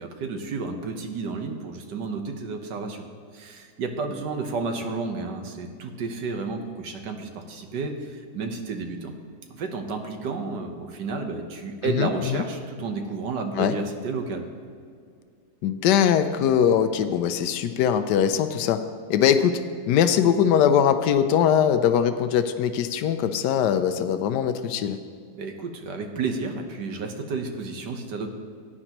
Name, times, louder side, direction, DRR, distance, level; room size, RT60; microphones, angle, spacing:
voice 1, 0.0-3.1 3.3-9.1 9.6-14.4 25.3-28.3, right 4 dB, 85° right, 5 dB, 1.6 m, -31 dB
voice 2, 11.8-12.4 13.6-13.8 15.6-18.8 19.1-19.6 19.9-25.0, left 8 dB, 80° left, 10 dB, 1.2 m, -21 dB
16.0 x 9.9 x 3.0 m, 2.3 s
omnidirectional pair, 1.8 m